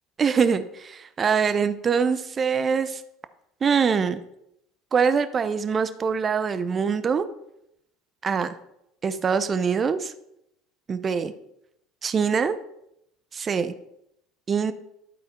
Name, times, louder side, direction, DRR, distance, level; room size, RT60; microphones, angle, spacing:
voice 1, 0.2-3.0 3.6-4.2 4.9-7.2 8.2-8.5 9.0-10.1 10.9-11.3 12.0-12.6 13.3-13.7 14.5-14.7, right 6 dB, 35° right, 12 dB, 0.7 m, -23 dB
12.0 x 4.2 x 4.3 m, 0.80 s
hypercardioid pair, 75°, 0 cm